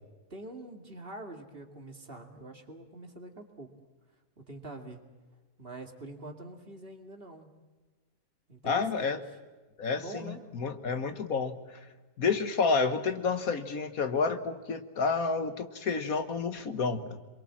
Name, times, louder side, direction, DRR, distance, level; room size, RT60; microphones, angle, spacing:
voice 1, 0.3-3.7 4.4-5.1 5.6-7.5 8.5-9.2 9.9-10.4, right 2 dB, 35° right, 5 dB, 2.6 m, -45 dB
voice 2, 8.6-9.2 9.8-11.6 12.2-17.2, left 4 dB, 65° left, 10 dB, 1.7 m, -30 dB
27.0 x 23.0 x 7.5 m, 1.3 s
omnidirectional pair, 1.6 m